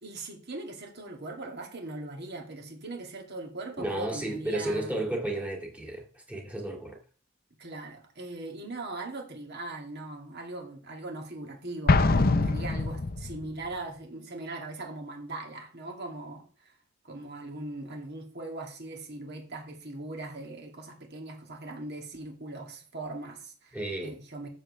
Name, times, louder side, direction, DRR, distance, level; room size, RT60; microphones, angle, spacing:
voice 1, 0.0-5.0 7.6-16.7 17.0-23.8 24.0-24.5, right 2 dB, 50° right, 2.5 m, -40 dB
voice 2, 3.8-7.0 23.7-24.2, right 1 dB, 5° right, 2.1 m, -33 dB
Explosion, 11.9-13.5, left 3 dB, 45° left, 0.6 m, -24 dB
14.0 x 7.0 x 3.3 m
head